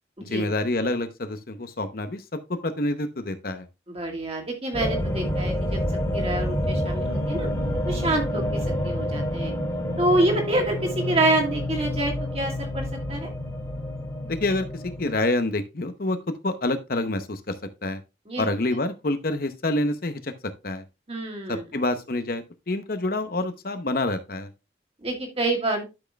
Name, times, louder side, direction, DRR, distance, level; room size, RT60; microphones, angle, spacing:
voice 1, 0.2-3.7 14.2-16.2 16.4-17.5 17.8-18.0 18.4-20.3 20.6-20.8 21.5-24.5, left 2 dB, 50° left, 9 dB, 0.8 m, -27 dB
voice 2, 3.9-5.8 6.1-7.5 7.9-9.5 10.0-13.3 18.3-18.4 21.1-21.6 25.0-25.8, right 2 dB, 30° right, 2 dB, 2.3 m, -27 dB
sound 1, 4.7-15.2, equal, 15° left, 2.2 m, -28 dB
12.0 x 6.1 x 2.3 m, 0.25 s
head